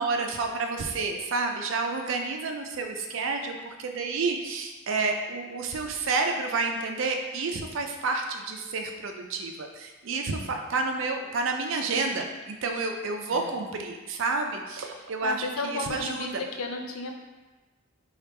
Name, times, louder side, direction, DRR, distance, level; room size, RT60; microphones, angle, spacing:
voice 1, 0.0-16.4, right 3 dB, 65° right, 4 dB, 0.4 m, -30 dB
voice 2, 15.2-17.1, left 3 dB, 90° left, 3 dB, 0.5 m, -34 dB
3.4 x 2.4 x 4.3 m, 1.2 s
head